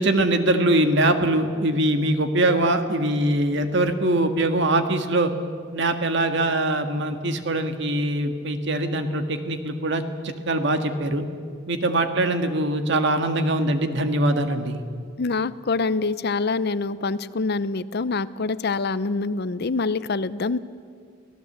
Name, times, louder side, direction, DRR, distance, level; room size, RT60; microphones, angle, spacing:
voice 1, 0.0-5.3 5.7-11.2 11.7-14.8, right 1 dB, 65° right, 7 dB, 1.7 m, -22 dB
voice 2, 15.2-20.6, left 3 dB, 55° left, 16 dB, 0.6 m, -25 dB
24.0 x 16.5 x 8.0 m, 2.2 s
head